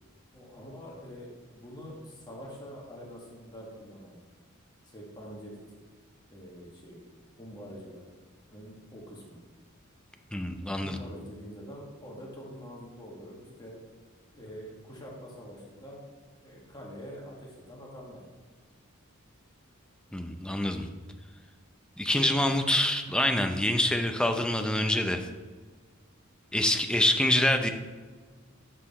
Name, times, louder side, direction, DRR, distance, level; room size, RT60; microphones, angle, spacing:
voice 1, 0.3-4.2 4.8-5.6 6.3-7.0 7.4-8.0 8.5-9.4 10.8-13.8 14.3-16.0 16.4-18.2, equal, 20° left, -3 dB, 1.6 m, -45 dB
voice 2, 10.3-11.0 20.1-20.9 22.0-25.3 26.5-27.7, left 1 dB, 5° left, 5 dB, 0.5 m, -26 dB
7.6 x 6.5 x 4.2 m, 1.4 s
head